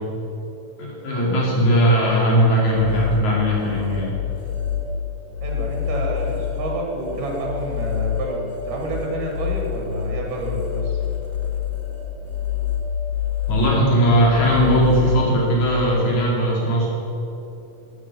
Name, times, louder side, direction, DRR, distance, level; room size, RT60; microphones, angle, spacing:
voice 1, 0.8-4.1 13.5-16.9, equal, 65° left, -4 dB, 4.2 m, -18 dB
sound 1, 2.6-16.0, left 8 dB, 40° left, 2.2 m, -28 dB
voice 2, 5.4-11.0, right 1 dB, 85° right, -1 dB, 3.7 m, -29 dB
13.5 x 8.5 x 7.1 m, 3.0 s
omnidirectional pair, 3.7 m